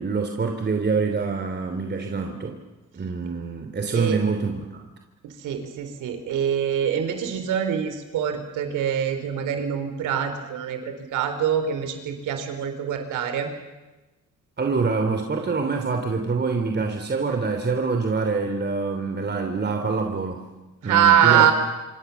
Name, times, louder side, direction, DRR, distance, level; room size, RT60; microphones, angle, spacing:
voice 1, 0.0-2.6 2.9-4.8 14.6-20.5 20.8-21.5, right 4 dB, 35° right, 4 dB, 3.1 m, -25 dB
voice 2, 5.2-13.5 20.8-21.5, right 9 dB, 90° right, 8 dB, 4.1 m, -24 dB
26.5 x 26.0 x 7.2 m, 1.1 s
cardioid pair, 90°, 30 cm